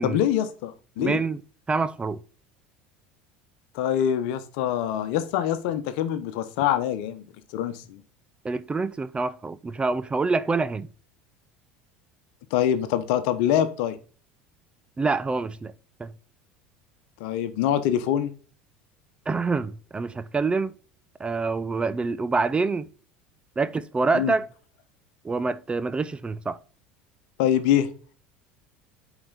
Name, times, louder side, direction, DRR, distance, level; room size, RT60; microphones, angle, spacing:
voice 1, 0.0-1.2 3.7-7.2 7.5-8.0 12.5-14.0 17.2-18.3 24.1-24.3 27.4-27.9, left 10 dB, 65° left, 1.0 m, -24 dB
voice 2, 1.0-1.4 1.7-2.2 8.4-10.9 15.0-15.7 16.0-16.1 19.3-20.7 21.2-22.9 23.6-24.5 25.2-26.6, right 4 dB, 20° right, 0.5 m, -26 dB
8.7 x 5.0 x 4.1 m
hypercardioid pair, 75°, 5 cm